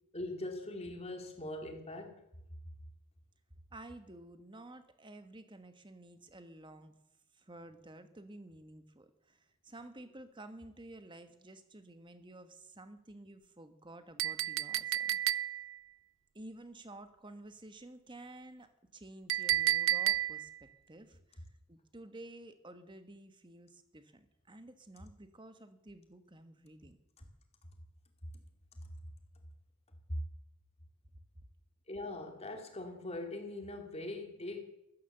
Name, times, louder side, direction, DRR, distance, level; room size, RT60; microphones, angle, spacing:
voice 1, 0.1-2.2 31.9-34.6, left 2 dB, 30° left, 3 dB, 2.5 m, -41 dB
voice 2, 3.7-6.9 7.3-15.3 16.3-27.0, right 1 dB, 20° right, 9 dB, 1.3 m, -52 dB
Chink clink, 14.2-15.8 19.3-20.6, right 12 dB, 60° right, 0.5 m, -31 dB
14.0 x 14.0 x 6.7 m, 0.85 s
head